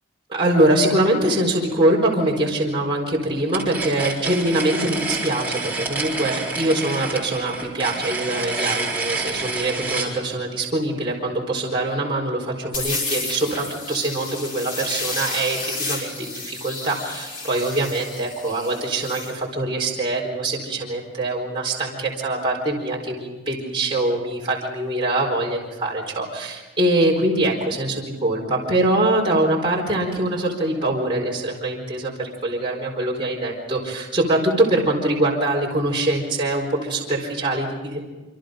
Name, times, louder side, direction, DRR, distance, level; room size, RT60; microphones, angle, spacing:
voice 1, 0.3-38.0, right 1 dB, 25° right, -3 dB, 4.3 m, -23 dB
sound 1, 3.5-10.1, right 3 dB, 10° right, 4.3 m, -28 dB
sound 2, 12.7-19.3, left 3 dB, 45° left, 6.9 m, -31 dB
27.0 x 26.0 x 5.2 m, 1.2 s
head